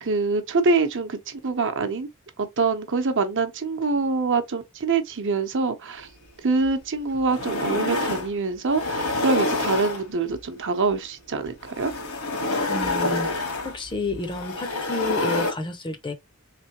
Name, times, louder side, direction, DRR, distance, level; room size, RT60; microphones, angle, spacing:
voice 1, 0.0-2.1 2.4-6.1 6.4-11.9, right 4 dB, 55° right, 0.8 m, -25 dB
sound 1, 6.6-6.7 7.1-8.3 8.7-10.4 11.5-15.5, left 2 dB, 75° left, 1.6 m, -27 dB
voice 2, 12.7-13.3 13.6-16.1, left 2 dB, 20° left, 0.6 m, -30 dB
3.6 x 3.3 x 3.0 m
head